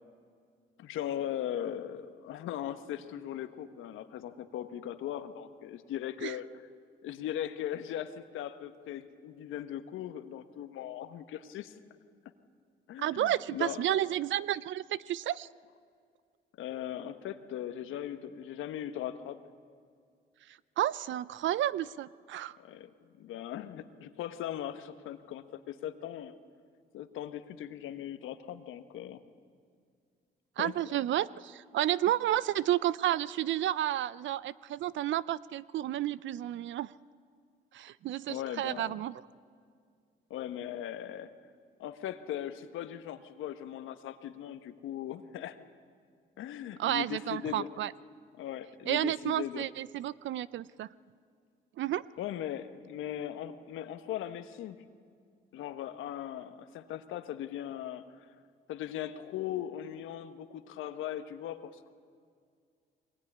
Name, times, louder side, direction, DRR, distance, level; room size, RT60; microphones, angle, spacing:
voice 1, 0.8-6.5 7.0-11.8 12.9-14.0 16.6-19.4 22.5-22.9 23.2-26.4 26.9-29.2 30.6-30.7 38.3-38.9 40.3-41.3 41.8-45.6 46.4-47.7 48.3-49.7 52.2-54.8 55.5-58.0 58.7-61.9, left 11 dB, 85° left, 10 dB, 1.3 m, -39 dB
voice 2, 13.0-15.5 20.5-22.6 30.6-36.9 37.7-39.2 46.8-47.9 48.9-50.9 51.8-52.1, right 12 dB, 70° right, 19 dB, 0.6 m, -31 dB
23.0 x 20.0 x 10.0 m, 2.2 s
cardioid pair, 90°, 20 cm